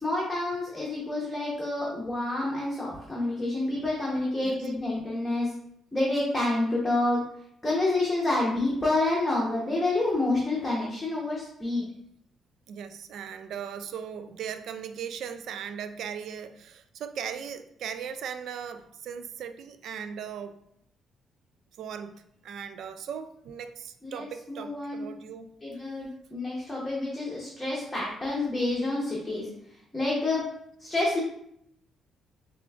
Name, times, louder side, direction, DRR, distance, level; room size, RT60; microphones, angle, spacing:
voice 1, 0.0-5.5 5.9-7.2 7.6-11.8 24.0-25.1 25.6-29.5 29.9-30.4 30.8-31.2, left 2 dB, 10° left, -5 dB, 0.8 m, -28 dB
voice 2, 12.7-20.6 21.8-25.5, right 7 dB, 75° right, 10 dB, 0.3 m, -38 dB
6.6 x 2.5 x 2.4 m, 0.73 s
cardioid pair, 120°, 0 cm